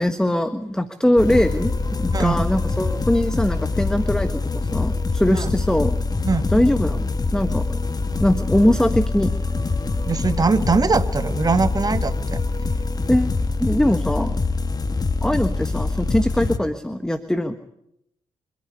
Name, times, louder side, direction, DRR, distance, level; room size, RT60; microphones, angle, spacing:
voice 1, 0.0-6.0 6.5-7.9 8.2-9.3 13.1-14.3 15.2-17.5, left 1 dB, 5° left, 9 dB, 1.4 m, -21 dB
sound 1, 1.2-16.6, left 3 dB, 30° left, 1.5 m, -24 dB
voice 2, 2.1-2.5 5.3-5.6 6.3-6.5 10.1-12.4, right 4 dB, 30° right, 11 dB, 1.4 m, -21 dB
26.0 x 10.5 x 9.9 m, 0.80 s
supercardioid pair, 50°, 12 cm